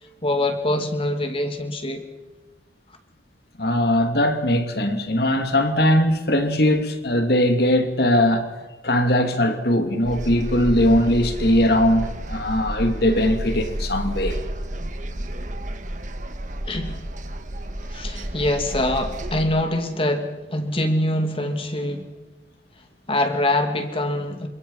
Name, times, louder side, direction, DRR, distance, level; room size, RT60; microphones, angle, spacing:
voice 1, 0.2-2.0 16.7-17.0 17.9-22.1 23.1-24.5, left 1 dB, 30° left, 2.9 m, -24 dB
voice 2, 3.6-8.5 8.8-14.4, left 1 dB, 55° left, 2.7 m, -20 dB
sound 1, 10.0-19.4, right 1 dB, 45° right, 1.7 m, -31 dB
29.0 x 26.5 x 5.6 m
head